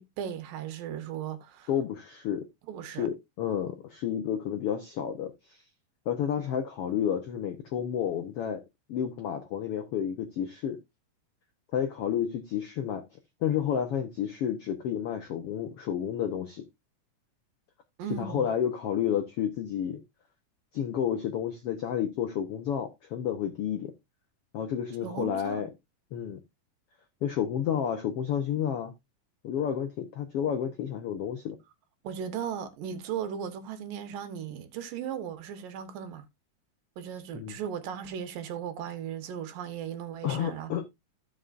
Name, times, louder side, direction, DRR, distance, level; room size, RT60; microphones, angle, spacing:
voice 1, 0.0-1.7 2.7-3.1 18.0-18.5 25.0-25.7 32.0-36.2 37.0-40.7, right 8 dB, 80° right, 2.8 m, -37 dB
voice 2, 1.7-2.5 2.8-5.6 6.1-8.6 8.9-10.8 11.7-13.0 13.4-16.6 18.2-20.0 20.7-23.9 24.5-25.7 26.1-26.4 27.2-28.9 29.4-31.6 37.3-37.5 40.2-40.9, left 9 dB, 85° left, 1.3 m, -30 dB
15.0 x 5.5 x 2.5 m
omnidirectional pair, 3.9 m